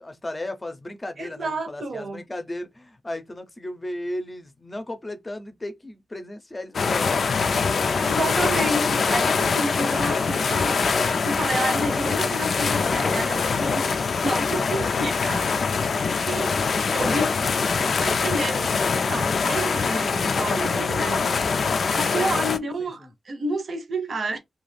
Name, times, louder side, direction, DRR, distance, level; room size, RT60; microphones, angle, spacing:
voice 1, 0.0-7.2 16.9-18.0 22.8-23.1, left 1 dB, 20° left, 0.6 m, -35 dB
voice 2, 1.2-2.2 8.0-13.9 14.2-15.6 16.3-17.3 17.8-18.7 19.1-21.4 21.7-24.4, right 2 dB, 55° right, 0.7 m, -30 dB
sound 1, 6.7-22.6, left 5 dB, 60° left, 0.3 m, -23 dB
2.4 x 2.4 x 3.3 m
wide cardioid pair, 105°, 0 cm